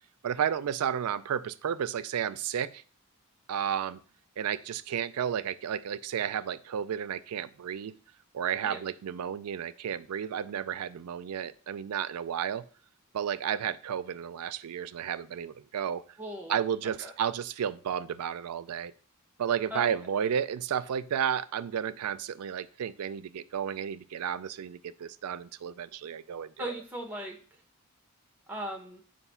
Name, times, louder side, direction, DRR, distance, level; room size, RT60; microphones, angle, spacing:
voice 1, 0.2-2.8 3.5-4.0 4.4-7.9 8.3-12.6 13.1-16.0 16.5-18.9 19.4-26.7, right 8 dB, 90° right, 15 dB, 0.4 m, -32 dB
voice 2, 16.2-16.6 17.0-17.1 19.7-19.9 26.6-27.4 28.5-29.0, equal, 10° right, 2 dB, 0.9 m, -37 dB
6.7 x 2.6 x 5.5 m, 0.41 s
head